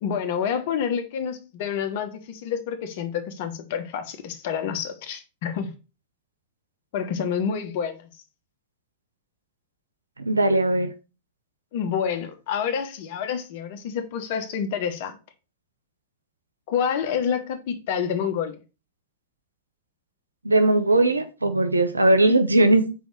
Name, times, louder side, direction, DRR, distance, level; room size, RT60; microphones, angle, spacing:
voice 1, 0.0-5.7 6.9-8.1 11.7-15.2 16.7-18.6, left 7 dB, 55° left, 1.2 m, -28 dB
voice 2, 10.2-10.9 20.4-22.9, right 2 dB, 85° right, 0.8 m, -19 dB
4.7 x 4.2 x 5.3 m
figure-of-eight pair, 95°, 0 cm